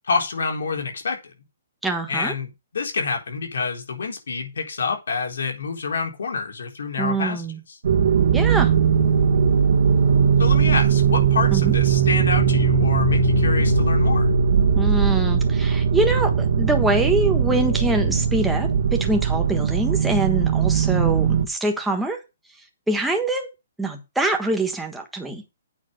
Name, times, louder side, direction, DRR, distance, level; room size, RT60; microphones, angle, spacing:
voice 1, 0.0-1.3 2.1-7.4 10.4-14.3, left 4 dB, 85° left, 3.9 m, -27 dB
voice 2, 1.8-2.3 7.0-7.6 8.3-8.7 11.5-11.7 14.7-22.2 22.9-23.5 23.8-25.4, right 2 dB, ahead, 1.4 m, -24 dB
sound 1, 7.8-21.4, right 6 dB, 55° right, 1.8 m, -19 dB
8.7 x 5.6 x 6.6 m
hypercardioid pair, 170°, 0 cm